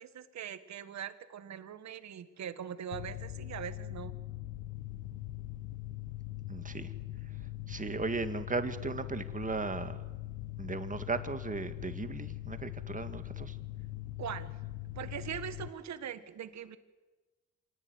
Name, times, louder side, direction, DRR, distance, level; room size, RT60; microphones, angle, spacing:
voice 1, 0.0-4.1 14.2-14.6 14.9-16.8, right 8 dB, 65° right, 12 dB, 1.8 m, -41 dB
Mechanical fan, 2.9-15.7, left 15 dB, 65° left, 1.1 m, -42 dB
voice 2, 6.5-6.9 7.7-10.0 10.6-13.6, right 4 dB, 25° right, 10 dB, 2.0 m, -36 dB
26.0 x 18.0 x 9.6 m, 1.2 s
cardioid pair, 90°, 30 cm